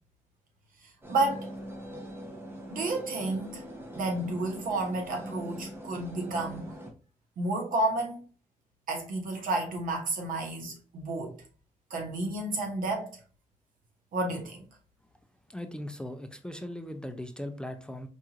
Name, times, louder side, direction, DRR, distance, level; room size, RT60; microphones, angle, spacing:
sound 1, 1.0-6.9, equal, 15° right, 0.8 m, -42 dB
voice 1, 1.1-1.5 2.7-3.6 4.0-6.8 7.4-8.2 8.9-11.4 11.9-13.1 14.1-14.6, right 2 dB, 85° right, 1.1 m, -31 dB
voice 2, 15.5-18.1, left 1 dB, 5° left, 0.4 m, -39 dB
4.6 x 2.9 x 2.4 m
wide cardioid pair, 135°, 14 cm